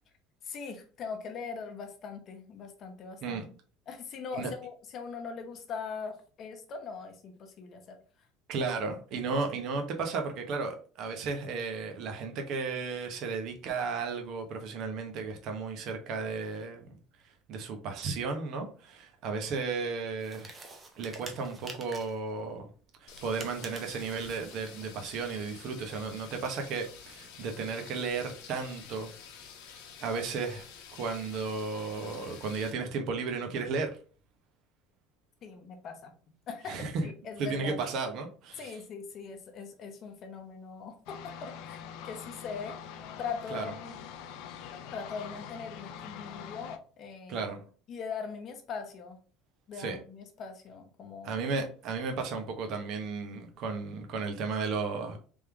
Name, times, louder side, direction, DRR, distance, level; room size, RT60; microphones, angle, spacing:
voice 1, 0.4-3.4 3.9-8.0 35.4-36.1 36.5-37.8 38.6-42.8 43.2-44.0 44.9-47.5 47.9-49.2 49.7-51.3, left 5 dB, 35° left, 0.8 m, -41 dB
voice 2, 8.5-17.0 17.2-20.6 21.0-22.7 23.0-29.1 30.0-34.0 36.7-37.1 37.4-38.8 43.5-43.7 47.3-47.6 49.8-50.0 51.2-55.2, right 4 dB, 45° right, 0.8 m, -34 dB
sound 1, 20.2-22.2 23.1-24.9, right 3 dB, 15° right, 0.6 m, -48 dB
sound 2, 23.1-32.7, left 7 dB, 80° left, 0.9 m, -50 dB
sound 3, 41.1-46.8, left 8 dB, 65° left, 0.4 m, -44 dB
3.6 x 3.2 x 3.4 m
cardioid pair, 170°, 0 cm